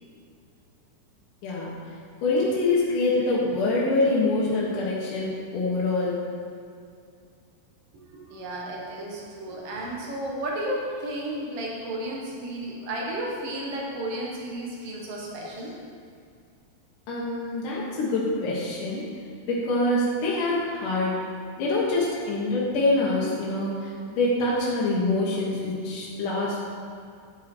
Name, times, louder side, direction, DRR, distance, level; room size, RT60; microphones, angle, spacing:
voice 1, 1.4-1.7 2.2-6.2 17.1-19.1 19.4-21.2 21.6-26.6, left 2 dB, 60° left, -6 dB, 2.4 m, -25 dB
voice 2, 8.1-15.7, right 1 dB, 70° right, -3 dB, 1.4 m, -33 dB
10.5 x 8.4 x 4.4 m, 2.3 s
omnidirectional pair, 4.9 m